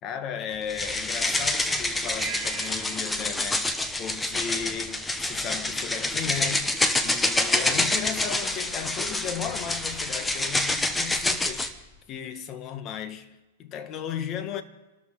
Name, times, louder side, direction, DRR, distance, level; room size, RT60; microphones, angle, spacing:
voice 1, 0.0-3.7 4.0-11.7 12.1-14.6, left 8 dB, 35° left, 1.3 m, -35 dB
sound 1, 0.7-11.7, left 2 dB, 10° left, 0.9 m, -27 dB
sound 2, 2.2-5.0, right 7 dB, 15° right, 1.9 m, -41 dB
27.5 x 13.0 x 3.8 m
hypercardioid pair, 135°, 0 cm